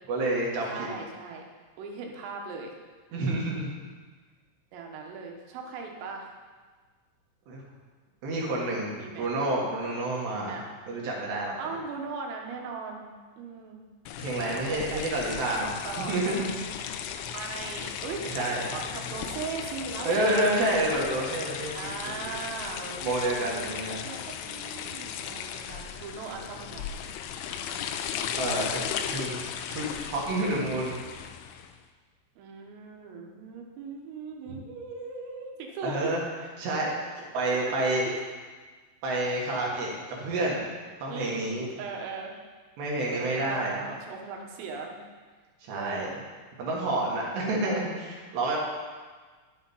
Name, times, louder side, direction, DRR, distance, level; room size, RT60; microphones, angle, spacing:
voice 1, 0.1-0.9 3.1-3.7 7.5-7.6 8.2-11.6 14.2-16.5 18.2-18.7 20.0-21.9 23.0-24.0 28.4-29.4 29.7-31.0 35.8-36.2 36.6-36.9 37.3-38.1 39.0-39.9 40.2-40.6 41.0-41.7 42.8-43.8 45.7-46.1 46.6-48.6, right 2 dB, 65° right, -3 dB, 3.4 m, -29 dB
voice 2, 0.7-1.4 1.8-2.7 3.1-3.4 4.7-6.3 9.0-9.3 10.5-10.7 11.4-13.1 13.4-13.8 14.4-15.0 15.9-16.6 17.3-18.2 18.7-20.4 21.7-24.2 24.5-26.9 32.4-36.2 37.7-37.8 38.0-38.2 41.1-41.5 41.8-42.3 43.1-45.0 45.7-46.1 47.4-47.9, right 4 dB, 80° right, 1 dB, 3.8 m, -39 dB
sound 1, 14.1-31.7, left 8 dB, 80° left, 2.8 m, -36 dB
10.0 x 8.4 x 5.5 m, 1.4 s
omnidirectional pair, 5.9 m